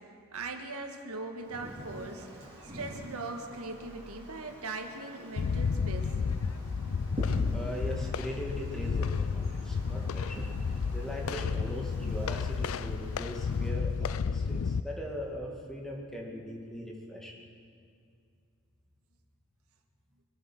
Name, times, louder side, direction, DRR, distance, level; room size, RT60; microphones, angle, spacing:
voice 1, 0.3-2.4 2.7-6.1, right 3 dB, 90° right, 4 dB, 1.7 m, -40 dB
Wind, 1.3-13.7, right 1 dB, 25° right, 3.9 m, -46 dB
sound 1, 5.4-14.8, left 5 dB, 70° left, 0.4 m, -32 dB
voice 2, 7.5-10.5 10.9-17.3, equal, ahead, -2 dB, 1.9 m, -40 dB
24.0 x 8.9 x 6.1 m, 2.4 s
head